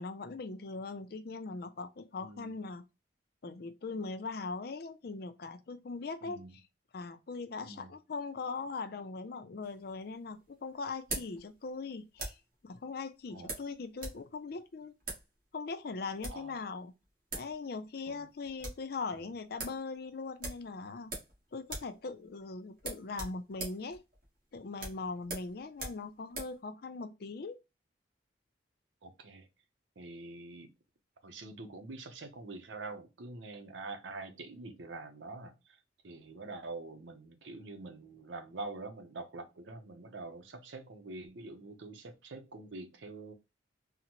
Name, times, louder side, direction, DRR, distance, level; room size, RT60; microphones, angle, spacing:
voice 1, 0.0-2.8 3.4-6.4 6.9-12.4 12.6-14.9 15.5-16.9 17.3-21.1 21.5-24.0 24.5-27.6, left 4 dB, 55° left, 0.4 m, -40 dB
voice 2, 6.2-6.5 7.6-7.9 13.3-13.5 16.3-16.6 18.0-18.3 19.2-19.3 29.0-29.5 30.0-30.7 31.2-35.8 36.0-43.3, right 3 dB, 90° right, 0.7 m, -45 dB
sound 1, 9.6-12.5 13.5-14.2 14.5-14.6 15.0-15.3 16.0-16.5 17.0-17.1 17.3-17.5 17.8-17.9 18.3-18.9 19.2-19.3 19.6-19.8 20.4-21.4 21.6-22.0 22.2-22.4 22.8-26.6, right 2 dB, 50° right, 1.4 m, -42 dB
3.8 x 2.1 x 2.9 m
head